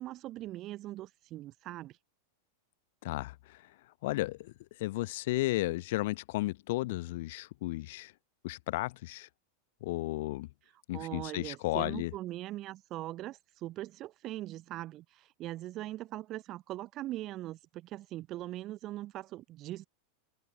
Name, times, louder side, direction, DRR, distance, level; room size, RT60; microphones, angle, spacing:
voice 1, 0.0-2.0 10.9-19.9, right 15 dB, 35° right, 0.7 m, -41 dB
voice 2, 3.0-3.7 4.0-8.1 8.4-9.3 9.8-10.5 10.9-12.1, left 19 dB, 50° left, 0.9 m, -34 dB
figure-of-eight pair, 90°, 0 cm